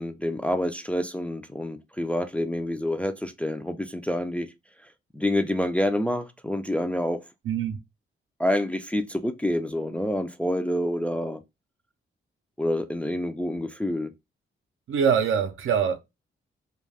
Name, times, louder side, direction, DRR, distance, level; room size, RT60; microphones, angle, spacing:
voice 1, 0.0-4.5 5.1-7.2 8.4-11.4 12.6-14.1, left 1 dB, 5° left, 0.3 m, -27 dB
voice 2, 7.4-7.8 14.9-16.0, right 7 dB, 75° right, 0.6 m, -23 dB
2.3 x 2.2 x 3.3 m
cardioid pair, 90°, 21 cm